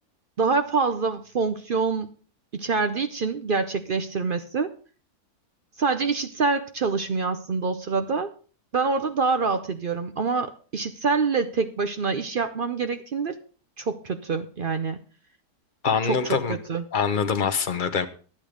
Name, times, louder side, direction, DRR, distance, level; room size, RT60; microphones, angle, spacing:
voice 1, 0.4-2.1 2.5-4.7 5.8-8.3 8.7-13.3 13.8-15.0 16.0-16.8, right 4 dB, 55° right, 9 dB, 0.6 m, -26 dB
voice 2, 15.8-16.6 16.9-18.1, left 6 dB, 45° left, 10 dB, 0.7 m, -24 dB
10.5 x 8.9 x 4.9 m, 0.40 s
omnidirectional pair, 1.7 m